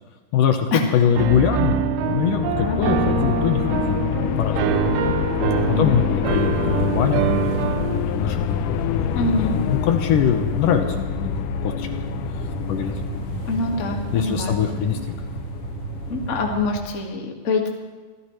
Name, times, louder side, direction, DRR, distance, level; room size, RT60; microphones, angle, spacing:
voice 1, 0.3-5.0 5.8-11.9 12.7-12.9 14.1-15.0, left 8 dB, 70° left, 5 dB, 2.3 m, -23 dB
Piano, 1.2-8.0, right 10 dB, 85° right, 2.7 m, -25 dB
sound 1, 1.5-16.4, left 11 dB, 85° left, 1.8 m, -27 dB
sound 2, 6.3-16.8, right 6 dB, 70° right, 2.3 m, -33 dB
voice 2, 9.1-9.6 13.5-14.6 16.1-17.7, left 3 dB, 40° left, 1 dB, 1.1 m, -25 dB
26.5 x 15.0 x 3.2 m, 1.3 s
omnidirectional pair, 4.4 m